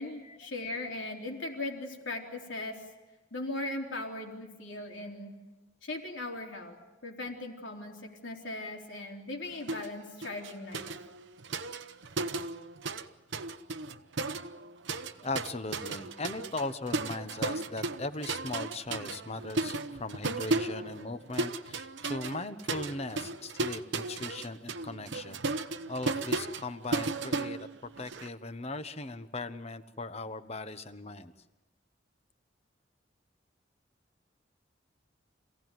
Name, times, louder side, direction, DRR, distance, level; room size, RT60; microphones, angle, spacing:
voice 1, 0.0-2.8 3.3-5.3 5.8-10.9, left 2 dB, 90° left, 2 dB, 3.7 m, -39 dB
sound 1, 9.7-9.9 10.2-13.1 13.3-28.3, right 3 dB, 80° right, 1.0 m, -35 dB
voice 2, 15.2-31.3, left 2 dB, 35° left, 11 dB, 1.1 m, -39 dB
26.5 x 17.0 x 9.3 m, 1.1 s
head